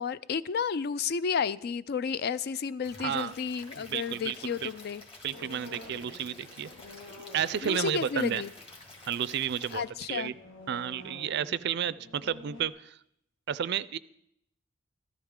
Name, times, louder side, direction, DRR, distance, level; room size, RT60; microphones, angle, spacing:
voice 1, 0.0-5.0 7.6-8.5 9.7-10.3, left 6 dB, 55° left, 0.4 m, -32 dB
Stream / Liquid, 2.8-9.8, left 2 dB, 30° left, 2.0 m, -50 dB
voice 2, 3.0-3.3 3.8-4.7 5.2-6.7 7.3-8.4 9.1-9.8 10.1-10.3 10.7-13.0 13.5-14.0, right 8 dB, 60° right, 0.4 m, -32 dB
sound 1, 5.3-12.7, left 2 dB, 75° left, 1.7 m, -50 dB
13.5 x 12.5 x 3.7 m
head